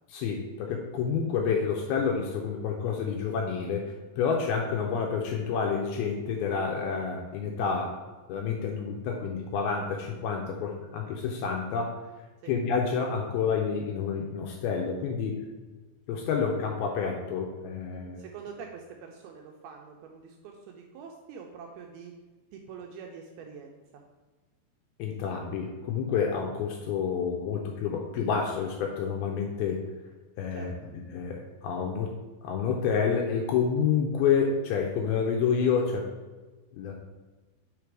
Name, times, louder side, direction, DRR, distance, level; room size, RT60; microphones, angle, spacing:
voice 1, 0.1-8.0 8.3-12.0 12.5-15.4 16.1-18.2 25.0-29.8 30.4-32.1 32.4-36.0 36.7-36.9, left 6 dB, 80° left, 1 dB, 2.3 m, -29 dB
voice 2, 18.2-22.1 22.5-24.0 30.5-30.9, right 6 dB, 85° right, 2 dB, 2.3 m, -45 dB
5.9 x 5.0 x 4.6 m, 1.3 s
omnidirectional pair, 4.9 m